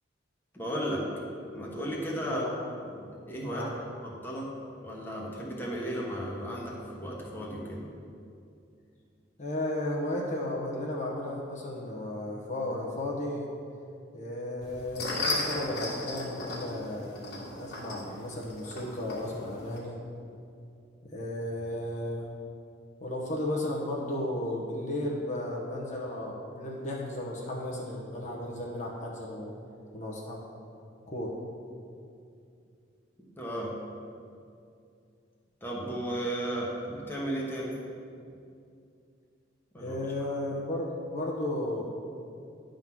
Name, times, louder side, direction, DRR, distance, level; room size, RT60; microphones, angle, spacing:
voice 1, 0.5-1.1 1.5-2.4 2.9-3.7 4.0-4.5 4.8-7.9 33.4-33.8 35.6-37.8 39.7-40.1, right 1 dB, 10° left, -4 dB, 1.2 m, -34 dB
voice 2, 2.2-2.7 3.5-3.7 9.4-13.5 14.1-20.0 21.0-22.3 23.0-29.6 29.9-30.4 31.1-31.3 39.7-41.8, left 1 dB, 40° left, -3 dB, 1.0 m, -34 dB
sound 1, 14.6-19.8, left 2 dB, 55° left, 1.7 m, -35 dB
10.5 x 3.8 x 6.0 m, 2.5 s
head